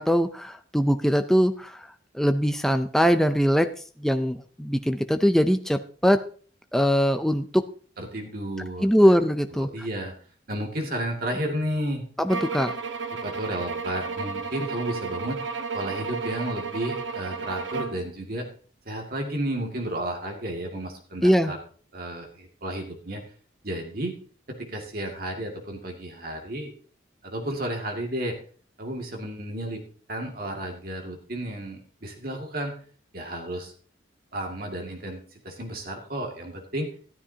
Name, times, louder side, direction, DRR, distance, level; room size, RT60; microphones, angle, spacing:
voice 1, 0.0-1.9 2.1-3.7 4.0-6.2 6.7-7.6 8.8-9.7 12.2-12.7 21.2-21.5, equal, ahead, 8 dB, 0.5 m, -22 dB
voice 2, 8.0-9.2 9.5-10.1 10.5-12.0 13.1-15.5 15.7-18.4 18.9-21.6 21.9-23.2 23.6-24.2 24.5-26.7 27.2-28.3 28.8-29.8 30.1-32.7 33.1-33.7 34.3-36.9, right 1 dB, 50° right, 1 dB, 2.2 m, -32 dB
sound 1, 12.3-18.1, right 4 dB, 85° right, 1.1 m, -32 dB
13.5 x 12.5 x 2.8 m, 0.43 s
head